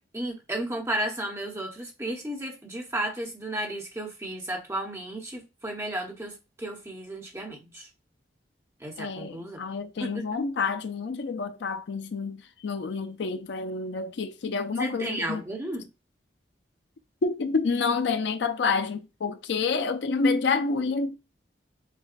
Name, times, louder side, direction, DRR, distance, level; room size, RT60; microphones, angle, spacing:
voice 1, 0.0-7.9 8.8-9.6 10.0-10.3 14.8-15.9, right 1 dB, 15° right, 1.0 m, -33 dB
voice 2, 9.0-15.4 17.2-21.2, left 4 dB, 70° left, 0.4 m, -28 dB
6.6 x 2.2 x 2.4 m
head